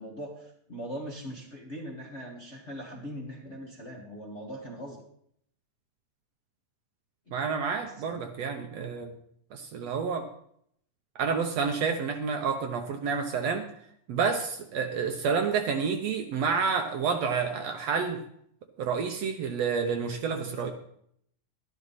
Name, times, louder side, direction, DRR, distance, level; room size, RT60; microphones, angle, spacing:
voice 1, 0.0-5.0 7.3-7.4 7.8-8.2 20.6-20.7, equal, 30° left, -2 dB, 1.4 m, -41 dB
voice 2, 7.3-9.1 9.5-10.3 11.2-13.7 14.1-18.2 18.8-20.7, right 5 dB, 65° right, 5 dB, 1.9 m, -29 dB
12.0 x 11.0 x 4.1 m, 0.67 s
omnidirectional pair, 3.5 m